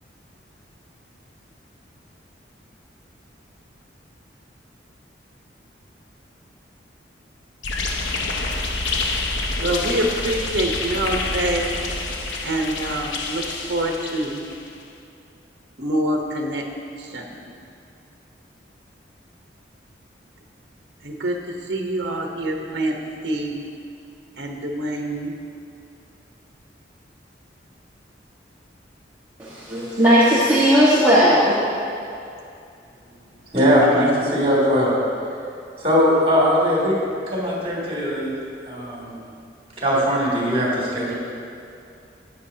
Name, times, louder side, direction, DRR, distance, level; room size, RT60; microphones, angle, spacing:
sound 1, 7.6-14.7, left 3 dB, 85° left, 0.8 m, -27 dB
voice 1, 9.6-11.7 12.4-13.4 13.7-14.4 15.8-16.7 17.0-17.5 21.0-23.6 24.4-25.3 33.9-34.0, right 1 dB, 65° right, 1 dB, 1.0 m, -26 dB
voice 2, 29.4-31.6, equal, 10° right, -9 dB, 1.4 m, -16 dB
voice 3, 33.5-34.9 35.8-37.0 37.3-38.3 38.7-39.2 39.8-41.1, equal, 30° right, -6 dB, 2.7 m, -20 dB
14.0 x 9.2 x 2.8 m, 2.5 s
head